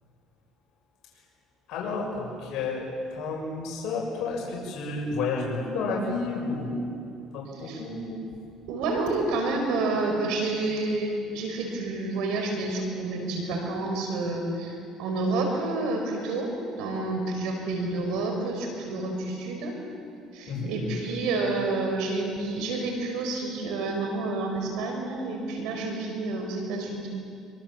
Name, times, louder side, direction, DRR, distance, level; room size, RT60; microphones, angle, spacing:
voice 1, 1.7-8.2 20.5-21.0, left 3 dB, 70° left, -2 dB, 6.4 m, -31 dB
voice 2, 8.7-16.5 16.8-19.8 20.3-27.1, right 2 dB, 80° right, 2 dB, 4.9 m, -29 dB
27.0 x 24.5 x 7.5 m, 2.4 s
supercardioid pair, 90°, 0 cm